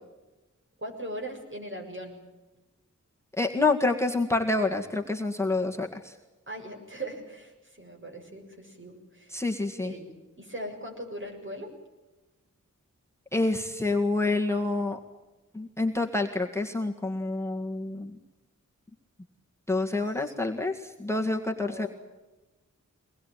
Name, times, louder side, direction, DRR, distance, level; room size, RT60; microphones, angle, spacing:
voice 1, 0.8-2.1 6.5-9.4 9.8-11.7 20.1-20.5 21.6-21.9, right 1 dB, 40° right, 2 dB, 6.9 m, -40 dB
voice 2, 3.3-6.2 9.3-9.9 13.3-15.0 15.5-18.1 19.7-21.9, left 2 dB, 10° left, 1 dB, 1.9 m, -27 dB
23.5 x 20.0 x 9.2 m, 1.1 s
wide cardioid pair, 70°, 31 cm